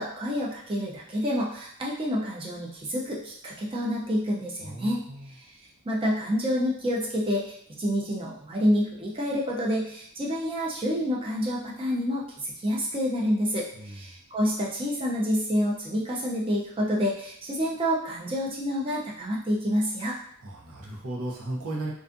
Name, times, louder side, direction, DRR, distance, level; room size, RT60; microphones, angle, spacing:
voice 1, 0.0-5.0 5.8-20.2, equal, 25° right, -3 dB, 0.5 m, -28 dB
voice 2, 4.6-5.3 13.7-13.9 20.4-21.9, right 2 dB, 75° right, -3 dB, 0.7 m, -35 dB
2.4 x 2.3 x 2.5 m, 0.64 s
head